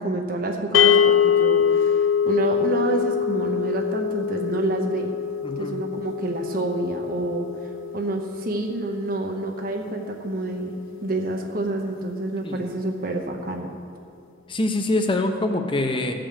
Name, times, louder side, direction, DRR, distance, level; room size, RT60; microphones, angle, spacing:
voice 1, 0.0-5.1 5.6-7.5 7.9-10.7 11.0-13.7, right 2 dB, 45° right, 3 dB, 0.8 m, -28 dB
sound 1, 0.7-11.0, left 8 dB, 75° left, 0.3 m, -24 dB
voice 2, 5.4-5.8 12.4-12.6 14.5-16.1, left 2 dB, 25° left, 5 dB, 0.8 m, -24 dB
14.0 x 5.1 x 7.4 m, 2.3 s
head